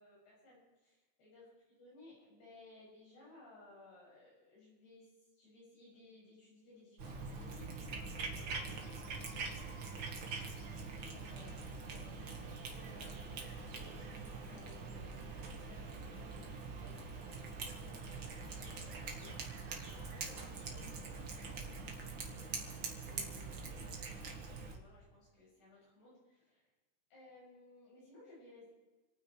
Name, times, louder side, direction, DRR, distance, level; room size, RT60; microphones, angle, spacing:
voice 1, 0.0-9.6 10.4-19.7 20.1-21.6 21.8-23.7 24.2-26.7 27.1-28.7, left 2 dB, 90° left, -6 dB, 9.1 m, -61 dB
Cat, 7.0-24.8, right 4 dB, 45° right, 1.9 m, -44 dB
28.5 x 9.5 x 4.6 m, 1.2 s
omnidirectional pair, 4.4 m